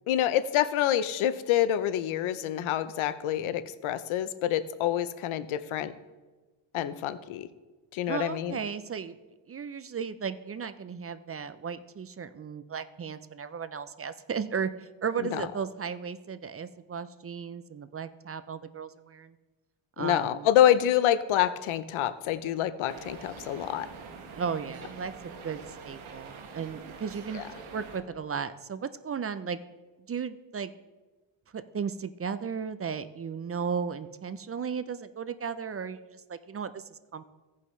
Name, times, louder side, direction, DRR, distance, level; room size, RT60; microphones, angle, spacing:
voice 1, 0.1-5.9 6.7-7.5 7.9-8.6 15.2-15.4 20.0-23.9 27.3-27.4, left 11 dB, 85° left, 14 dB, 0.7 m, -27 dB
voice 2, 8.1-9.2 9.5-19.3 20.0-20.5 24.3-27.4 27.7-29.6 30.1-30.7 31.5-37.3, right 6 dB, 30° right, 12 dB, 0.5 m, -35 dB
sound 1, 22.9-28.0, right 5 dB, 80° right, 1.5 m, -45 dB
16.5 x 5.6 x 3.2 m, 1.2 s
cardioid pair, 80°, 47 cm